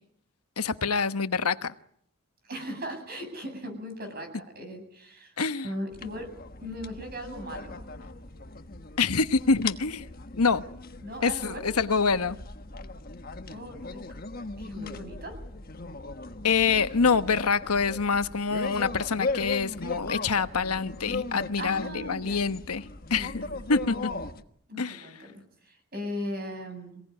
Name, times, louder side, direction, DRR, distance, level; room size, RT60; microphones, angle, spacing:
voice 1, 0.6-1.7 5.4-5.7 9.0-10.1 10.4-10.6 11.2-12.4 16.4-24.1 24.8-25.0, left 5 dB, 85° left, 11 dB, 1.1 m, -26 dB
voice 2, 2.4-5.3 5.6-6.3 6.6-7.8 11.0-11.8 13.5-14.0 14.6-15.4 21.6-22.4 23.1-23.5 24.7-25.3 25.6-27.0, equal, 45° right, 7 dB, 7.8 m, -38 dB
sound 1, 5.9-24.4, left 3 dB, 40° left, 1.3 m, -38 dB
27.5 x 18.0 x 9.9 m, 0.69 s
head